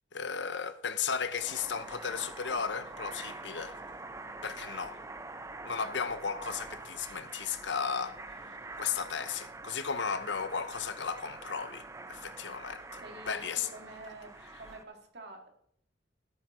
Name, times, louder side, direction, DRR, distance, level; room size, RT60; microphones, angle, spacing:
voice 1, 0.1-3.8 4.4-5.0 5.6-8.5 8.8-13.7, left 6 dB, 70° left, 0.8 m, -35 dB
sound 1, 1.2-14.8, right 3 dB, 15° right, 0.5 m, -45 dB
voice 2, 13.0-14.3 14.6-15.5, right 2 dB, 60° right, 1.9 m, -48 dB
14.0 x 8.9 x 3.7 m
head